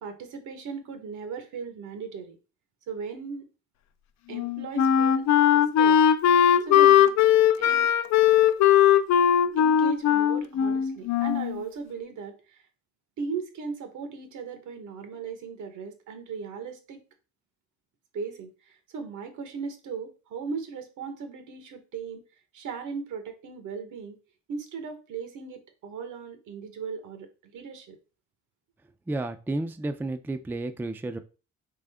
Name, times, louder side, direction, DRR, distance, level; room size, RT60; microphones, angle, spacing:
voice 1, 0.0-2.4 2.9-3.5 4.3-6.0 6.6-7.2 7.6-7.9 9.6-12.6 13.2-17.0 18.1-22.2 22.5-24.2 24.5-28.0, right 5 dB, 80° right, 7 dB, 1.1 m, -37 dB
Wind instrument woodwind instrument, 4.3-11.6, left 9 dB, 65° left, 0.5 m, -19 dB
voice 2, 29.1-31.2, right 2 dB, 5° right, 9 dB, 0.3 m, -31 dB
3.7 x 3.3 x 3.4 m, 0.33 s
cardioid pair, 90°, 30 cm